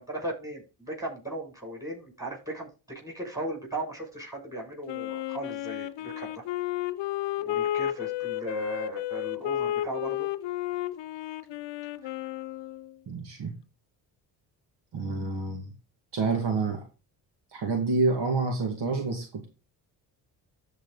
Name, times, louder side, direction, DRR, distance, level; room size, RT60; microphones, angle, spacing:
voice 1, 0.0-2.7 3.0-6.4 7.4-10.3, right 2 dB, 5° right, 0 dB, 6.4 m, -37 dB
Wind instrument woodwind instrument, 4.9-13.0, left 13 dB, 70° left, 0.8 m, -32 dB
voice 2, 13.1-13.5 14.9-15.7 16.1-16.8 17.5-19.5, right 3 dB, 60° right, 3 dB, 2.2 m, -28 dB
14.0 x 4.8 x 4.0 m, 0.32 s
supercardioid pair, 70°, 45 cm